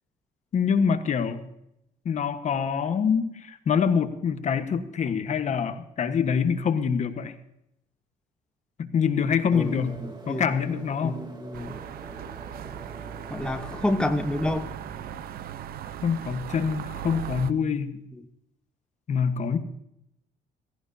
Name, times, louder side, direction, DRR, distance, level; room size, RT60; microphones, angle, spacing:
voice 1, 0.5-1.4 2.0-7.3 8.8-10.0 10.3-11.2 16.0-18.0 19.1-19.6, left 6 dB, 45° left, 9 dB, 1.3 m, -25 dB
voice 2, 9.5-10.4 11.0-11.8 13.3-14.7 18.1-18.2, left 1 dB, 5° left, 7 dB, 1.1 m, -29 dB
sound 1, 9.5-14.7, right 3 dB, 25° right, 3.0 m, -45 dB
sound 2, 11.5-17.5, right 9 dB, 60° right, 0.9 m, -38 dB
17.5 x 16.5 x 2.8 m, 0.80 s
cardioid pair, 110°, 17 cm